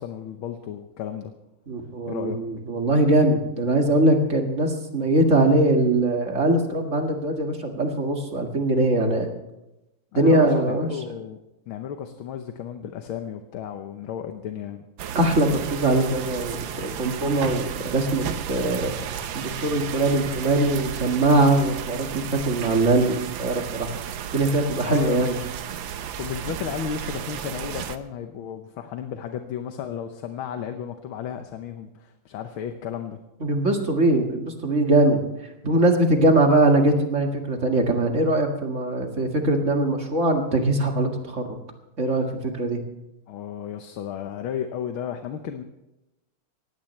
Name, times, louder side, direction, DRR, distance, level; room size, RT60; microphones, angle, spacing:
voice 1, 0.0-1.3 2.1-2.4 10.1-11.4 11.7-14.8 24.9-25.5 26.2-33.2 43.3-45.6, left 8 dB, 75° left, 6 dB, 1.7 m, -33 dB
voice 2, 1.7-9.3 10.2-10.9 15.1-23.9 24.3-25.4 33.4-35.2 35.6-41.4 42.0-42.8, right 2 dB, 35° right, 3 dB, 2.1 m, -21 dB
sound 1, 15.0-28.0, right 8 dB, 65° right, 1.5 m, -33 dB
19.0 x 16.0 x 3.3 m, 0.93 s
omnidirectional pair, 2.4 m